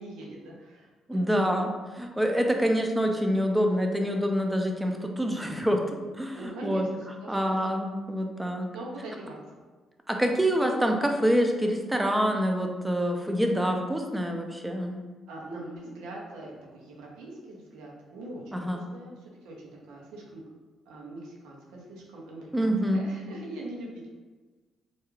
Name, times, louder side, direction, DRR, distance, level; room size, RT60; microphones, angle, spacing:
voice 1, 0.0-1.7 6.3-7.6 8.7-9.4 15.3-20.4 20.9-24.1, right 1 dB, 85° right, -2 dB, 0.6 m, -42 dB
voice 2, 1.1-5.8 6.1-6.9 7.3-8.7 10.1-15.0 18.5-18.8 22.5-23.1, equal, 10° right, 3 dB, 0.4 m, -26 dB
2.3 x 2.3 x 3.1 m, 1.3 s
supercardioid pair, 70°, 0 cm